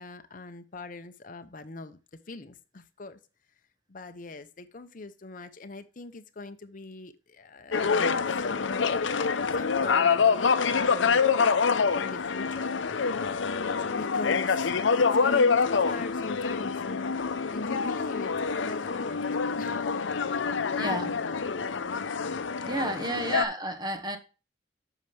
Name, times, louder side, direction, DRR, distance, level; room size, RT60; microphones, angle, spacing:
voice 1, 0.0-2.0 2.3-3.2 3.9-8.9 9.5-11.3 11.7-12.7 13.9-19.2 19.6-20.1 22.5-23.1, left 3 dB, 45° left, 0.7 m, -42 dB
sound 1, 7.7-23.5, left 5 dB, 85° left, 0.6 m, -26 dB
voice 2, 20.8-21.1 22.7-24.2, right 1 dB, 20° right, 1.0 m, -31 dB
8.0 x 5.9 x 3.3 m
head